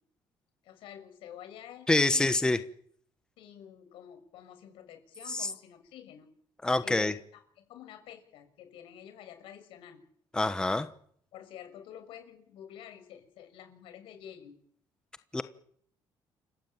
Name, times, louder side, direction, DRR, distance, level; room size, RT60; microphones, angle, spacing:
voice 1, 0.6-2.4 3.4-6.3 6.8-10.0 11.3-14.6, left 9 dB, 85° left, 7 dB, 6.1 m, -49 dB
voice 2, 1.9-2.6 5.3-5.5 6.6-7.1 10.3-10.9 15.3-15.4, left 2 dB, 10° left, 10 dB, 1.1 m, -26 dB
29.0 x 15.5 x 9.0 m, 0.66 s
cardioid pair, 140°, 9 cm